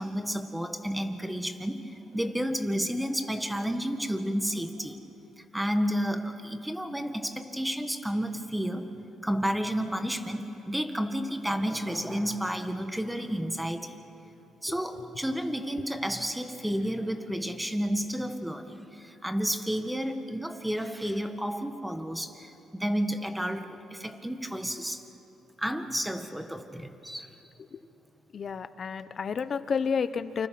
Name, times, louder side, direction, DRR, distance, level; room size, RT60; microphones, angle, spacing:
voice 1, 0.0-5.0 5.5-8.9 9.2-14.0 14.6-25.0 25.6-27.3, equal, 5° right, 8 dB, 1.7 m, -31 dB
voice 2, 28.3-30.5, left 6 dB, 50° left, 12 dB, 1.0 m, -30 dB
28.5 x 26.0 x 6.1 m, 3.0 s
cardioid pair, 90°, 0 cm